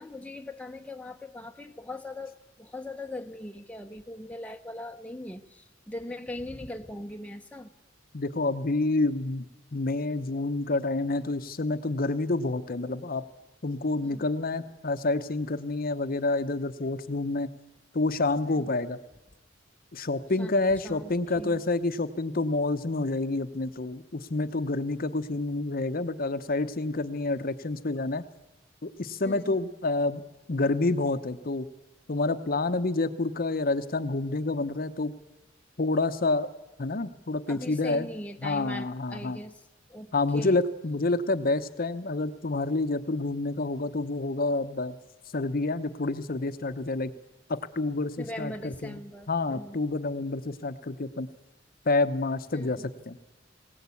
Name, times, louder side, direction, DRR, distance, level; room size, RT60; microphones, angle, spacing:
voice 1, 0.0-7.7 14.0-14.3 18.5-18.7 20.4-20.5 20.8-21.6 29.2-29.6 37.5-39.6 39.9-40.6 48.2-49.8 52.5-52.9, left 1 dB, 5° left, 4 dB, 0.9 m, -40 dB
voice 2, 8.1-13.2 13.6-17.5 17.9-19.0 19.9-28.3 28.8-30.2 30.5-31.7 32.1-35.1 35.8-36.5 36.8-38.1 38.4-39.4 40.1-44.9 45.3-47.1 47.5-49.0 49.3-51.3 51.8-53.2, left 2 dB, 50° left, 10 dB, 0.8 m, -28 dB
20.5 x 18.0 x 8.4 m, 1.0 s
head